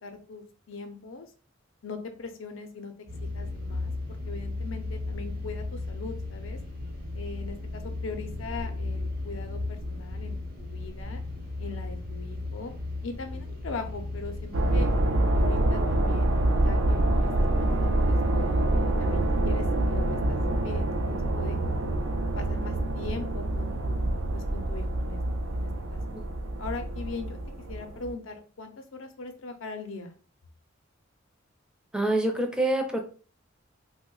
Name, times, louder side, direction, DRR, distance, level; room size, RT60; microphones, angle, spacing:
voice 1, 0.0-1.3 1.8-2.9 3.3-6.6 7.1-9.6 9.9-11.2 11.6-12.8 13.0-14.9 15.3-16.3 16.6-18.5 19.0-21.6 22.3-25.2 25.5-26.2 26.6-27.4 27.7-30.1, left 4 dB, 75° left, 7 dB, 0.6 m, -40 dB
sound 1, 3.1-15.0, left 2 dB, 55° right, 0.8 m, -35 dB
sound 2, 14.5-28.1, right 1 dB, 75° right, 0.5 m, -26 dB
voice 2, 31.9-33.0, right 1 dB, 5° right, 3 dB, 0.5 m, -26 dB
2.8 x 2.1 x 3.8 m, 0.40 s
head